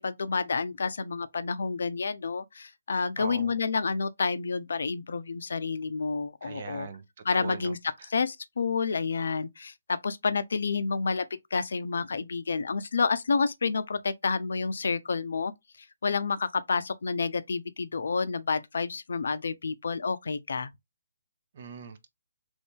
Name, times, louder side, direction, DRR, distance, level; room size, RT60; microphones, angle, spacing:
voice 1, 0.0-6.9 7.2-7.8 8.1-11.2 11.5-15.5 16.0-20.7, left 4 dB, 65° left, 0.4 m, -29 dB
voice 2, 3.2-3.6 6.4-7.0 7.3-8.1 21.5-22.1, right 5 dB, 50° right, 0.7 m, -41 dB
3.1 x 2.6 x 3.5 m
figure-of-eight pair, 140°, 0 cm